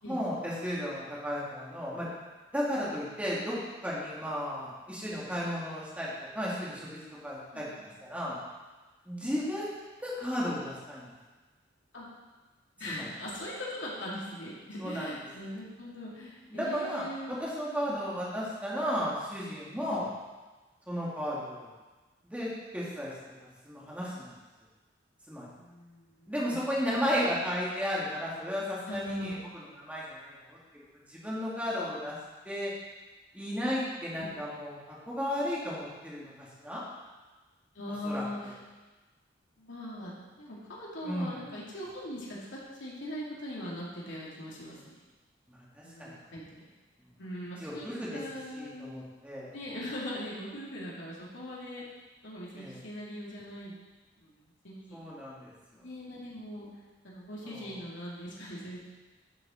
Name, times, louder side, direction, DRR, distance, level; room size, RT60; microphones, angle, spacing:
voice 1, 0.1-2.1 2.5-7.7 8.0-8.4 9.0-11.1 12.9-13.1 14.8-15.1 16.5-20.1 20.9-21.7 22.2-23.1 23.4-24.3 25.3-25.5 26.3-30.6 31.1-32.1 32.4-32.7 33.3-36.8 38.0-38.5 41.0-41.4 45.5-46.1 47.6-48.2 48.5-49.5 52.5-52.8 54.9-55.5 57.4-57.7, equal, 10° right, -7 dB, 2.6 m, -34 dB
voice 2, 7.5-7.9 11.9-12.0 12.8-17.5 17.9-18.4 19.9-20.0 25.5-26.3 28.9-29.4 34.2-34.3 37.7-38.5 39.6-40.1 40.4-45.0 45.8-46.6 47.2-47.9 48.1-49.0 49.5-51.8 52.2-53.8 54.2-55.0 55.7-56.7 57.0-58.8, equal, 75° left, -6 dB, 2.7 m, -40 dB
11.5 x 6.5 x 4.5 m, 1.2 s
head